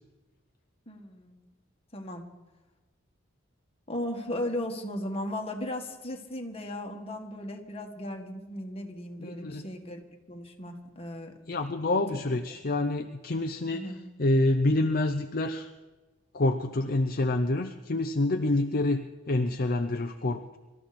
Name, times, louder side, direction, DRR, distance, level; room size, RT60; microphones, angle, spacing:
voice 1, 0.9-1.4 1.9-2.2 3.9-11.4 12.1-12.2 13.7-14.0, left 1 dB, 30° left, 2 dB, 1.9 m, -36 dB
voice 2, 9.2-9.6 11.5-13.9 14.2-15.7 16.3-20.6, left 2 dB, 45° left, 5 dB, 0.7 m, -27 dB
24.5 x 13.5 x 4.3 m, 1.2 s
head